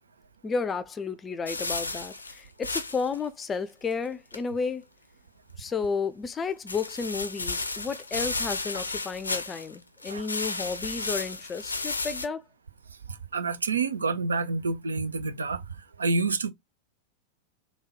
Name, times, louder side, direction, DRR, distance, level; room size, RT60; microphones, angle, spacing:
voice 1, 0.4-4.8 5.6-12.4, left 5 dB, 20° left, 0.5 m, -32 dB
sound 1, 1.5-3.2 3.4-3.5 3.9-4.0 4.3-4.4 6.7-9.7 10.0-12.3, left 3 dB, 80° left, 0.5 m, -33 dB
voice 2, 13.1-16.5, right 4 dB, 75° right, 0.5 m, -28 dB
3.6 x 2.3 x 4.2 m
figure-of-eight pair, 90°, 0 cm